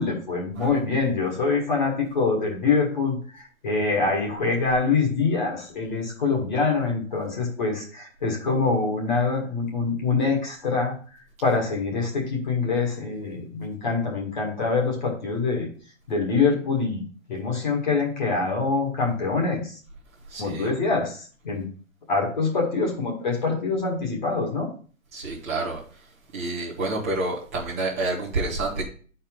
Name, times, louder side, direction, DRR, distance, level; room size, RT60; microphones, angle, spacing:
voice 1, 0.0-11.0 11.4-15.7 16.1-19.8 20.4-21.7 22.1-24.7, left 4 dB, 35° left, -1 dB, 2.0 m, -25 dB
voice 2, 20.3-20.7 25.1-25.8 26.3-28.8, right 2 dB, 10° right, -8 dB, 0.9 m, -28 dB
9.6 x 4.4 x 3.8 m, 0.42 s
hypercardioid pair, 175°, 40 cm